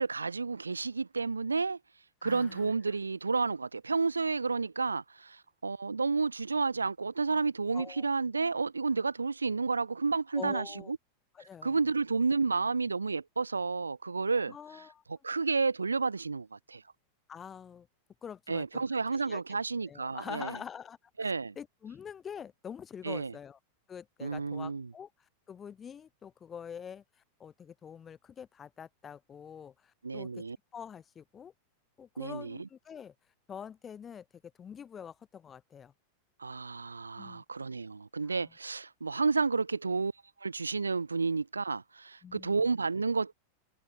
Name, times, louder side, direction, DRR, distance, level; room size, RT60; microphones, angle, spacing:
voice 1, 0.0-1.8 2.2-11.0 11.4-16.8 18.5-20.6 21.2-21.5 23.0-23.3 24.2-24.9 30.0-30.6 32.2-32.7 36.4-40.1 40.4-43.3, right 4 dB, 75° right, 1.2 m, -31 dB
voice 2, 2.2-2.7 7.7-8.0 10.3-10.9 11.3-11.8 14.5-15.0 17.3-17.9 18.2-18.8 19.1-19.4 19.9-23.6 23.9-25.1 25.5-27.0 27.4-30.4 30.7-31.5 32.0-33.1 33.5-34.3 34.6-35.9 37.2-37.4 38.3-38.5 42.2-42.6, left 7 dB, 20° left, 7.4 m, -45 dB
figure-of-eight pair, 90°, 0 cm